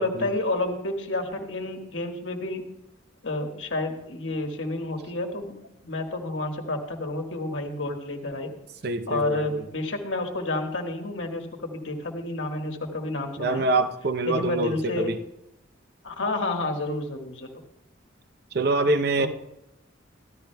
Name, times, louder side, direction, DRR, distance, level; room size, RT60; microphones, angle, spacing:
voice 1, 0.0-2.6 3.2-5.5 5.8-8.5 9.1-13.6 14.2-15.1 16.0-17.5 19.2-19.3, left 2 dB, 70° left, 3 dB, 1.5 m, -30 dB
voice 2, 8.8-9.6 13.4-15.2 18.5-19.3, right 2 dB, 50° right, 10 dB, 0.6 m, -25 dB
15.0 x 12.0 x 2.2 m, 0.89 s
head